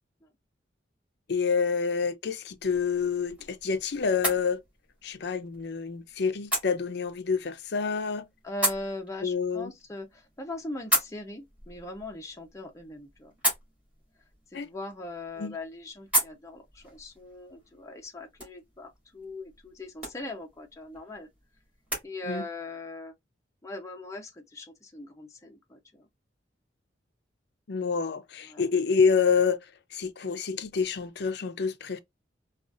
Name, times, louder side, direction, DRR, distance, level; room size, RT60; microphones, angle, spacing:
voice 1, 1.3-4.6 5.0-8.3 9.2-9.7 14.5-14.7 15.4-15.6 22.3-22.5 27.7-32.0, left 5 dB, 60° left, 0.5 m, -28 dB
sound 1, 2.6-22.1, equal, 10° right, 2.9 m, -36 dB
voice 2, 8.4-13.3 14.5-21.3 22.0-23.1 23.6-26.1 28.5-28.6, left 2 dB, 15° left, 0.6 m, -40 dB
4.8 x 2.4 x 2.4 m
head